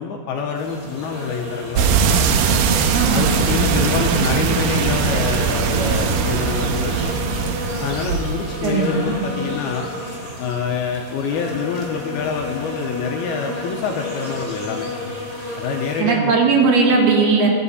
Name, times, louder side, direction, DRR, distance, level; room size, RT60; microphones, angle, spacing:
voice 1, 0.0-1.9 3.1-7.2 7.8-9.9 10.4-14.9 15.6-16.3, left 6 dB, 80° left, 2 dB, 2.4 m, -26 dB
sound 1, 0.5-16.0, left 1 dB, 20° right, 2.9 m, -31 dB
sound 2, 1.7-8.7, right 6 dB, 85° right, 2.0 m, -20 dB
voice 2, 2.9-3.6 8.6-9.1 16.0-17.5, right 4 dB, 65° right, 0 dB, 3.3 m, -18 dB
21.5 x 11.0 x 4.2 m, 2.7 s
omnidirectional pair, 5.2 m